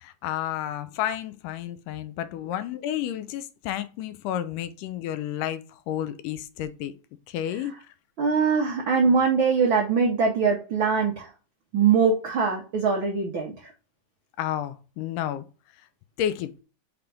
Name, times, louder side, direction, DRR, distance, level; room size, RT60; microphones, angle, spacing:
voice 1, 0.0-6.9 7.3-7.7 14.4-15.5 16.2-16.6, left 11 dB, 85° left, 2.2 m, -31 dB
voice 2, 8.2-11.3 11.7-13.5, right 5 dB, 80° right, 1.1 m, -22 dB
5.9 x 3.4 x 5.2 m
omnidirectional pair, 3.7 m